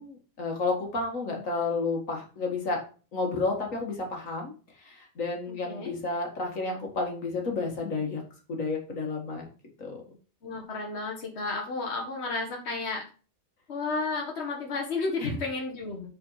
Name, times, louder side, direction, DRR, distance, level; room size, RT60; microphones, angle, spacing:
voice 1, 0.0-2.8 3.1-8.2 8.5-9.5 9.8-10.0 15.2-15.4, left 3 dB, 70° left, 1 dB, 2.2 m, -31 dB
voice 2, 10.4-13.0 13.7-16.1, left 3 dB, 50° left, 0 dB, 1.9 m, -32 dB
7.9 x 4.4 x 5.6 m, 0.37 s
omnidirectional pair, 1.4 m